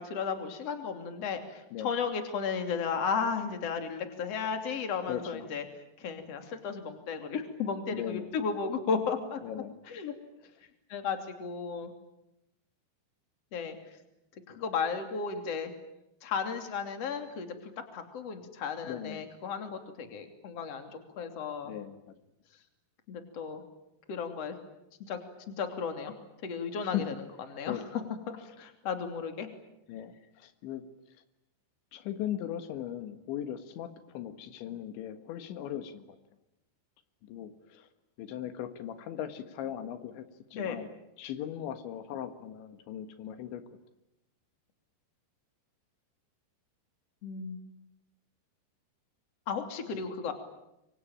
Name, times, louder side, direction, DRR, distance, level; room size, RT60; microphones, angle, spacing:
voice 1, 0.0-5.6 6.0-9.4 9.9-10.1 10.9-11.9 13.5-13.8 14.5-15.7 16.2-21.7 23.1-23.6 24.1-24.6 25.1-25.2 25.5-26.1 26.4-27.1 27.5-27.8 28.3-29.5 40.5-40.8 47.2-47.6 49.5-50.3, left 5 dB, 40° left, 7 dB, 3.5 m, -34 dB
voice 2, 5.1-5.6 7.9-8.3 9.4-9.8 18.8-19.2 21.6-22.0 26.9-27.1 27.6-28.1 29.9-30.8 31.9-36.1 37.2-37.9 38.2-40.3 40.5-40.9 41.2-43.6 49.9-50.0, left 10 dB, 85° left, 10 dB, 3.9 m, -38 dB
27.5 x 24.0 x 9.0 m, 0.87 s
omnidirectional pair, 5.1 m